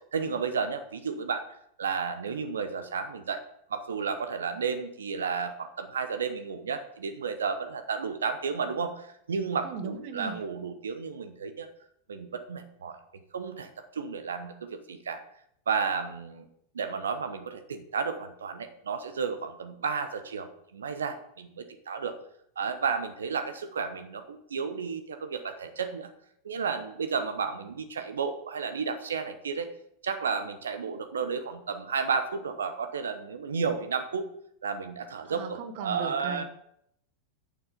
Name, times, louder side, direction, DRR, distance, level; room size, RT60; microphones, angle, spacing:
voice 1, 0.1-1.5 1.8-3.4 3.7-11.7 12.1-13.0 13.3-15.2 15.7-16.5 16.7-22.1 22.6-26.1 26.4-29.7 30.0-34.3 34.6-36.4, right 5 dB, 70° right, 9 dB, 0.9 m, -32 dB
voice 2, 9.6-10.4 35.2-36.4, right 5 dB, 45° right, 9 dB, 1.3 m, -37 dB
9.0 x 7.3 x 5.1 m, 0.73 s
figure-of-eight pair, 90°, 0 cm